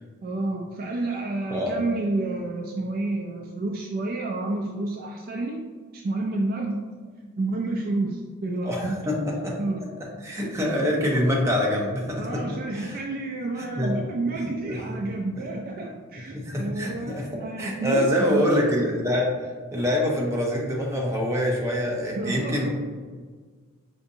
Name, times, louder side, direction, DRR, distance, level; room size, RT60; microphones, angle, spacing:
voice 1, 0.2-5.6 5.9-6.8 7.4-9.1 9.6-9.9 12.2-18.4 22.2-22.7, right 2 dB, 45° right, 1 dB, 0.3 m, -30 dB
voice 2, 8.6-9.2 9.4-9.5 10.2-12.4 12.7-13.0 13.6-14.0 14.6-15.0 15.4-15.5 16.3-19.3 19.7-22.7, left 1 dB, 15° right, -2 dB, 0.7 m, -25 dB
5.0 x 2.6 x 2.6 m, 1.5 s
head